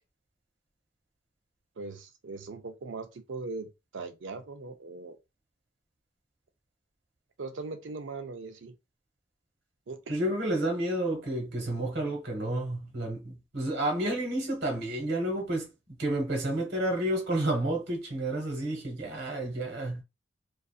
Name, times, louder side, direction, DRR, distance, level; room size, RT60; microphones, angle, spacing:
voice 1, 1.8-5.2 7.4-8.7 9.9-10.2, right 3 dB, 80° right, 0.5 m, -40 dB
voice 2, 10.1-15.7 16.0-20.0, right 1 dB, 60° right, 1.2 m, -30 dB
2.6 x 2.4 x 2.4 m
head